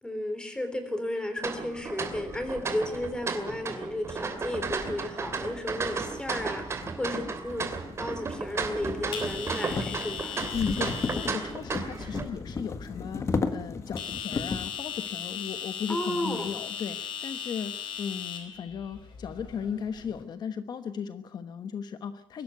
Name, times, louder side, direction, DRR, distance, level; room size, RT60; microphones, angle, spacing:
voice 1, 0.0-10.4 15.9-16.5, left 1 dB, 10° left, 8 dB, 3.6 m, -33 dB
sound 1, 1.4-12.2, right 4 dB, 35° right, 2.7 m, -34 dB
sound 2, 4.1-20.2, left 8 dB, 75° left, 5.1 m, -40 dB
sound 3, 5.9-6.0 6.7-14.8, left 4 dB, 35° left, 1.6 m, -34 dB
voice 2, 10.5-22.4, left 7 dB, 60° left, 10 dB, 1.1 m, -36 dB
23.0 x 13.0 x 9.4 m, 0.67 s
wide cardioid pair, 175°, 8 cm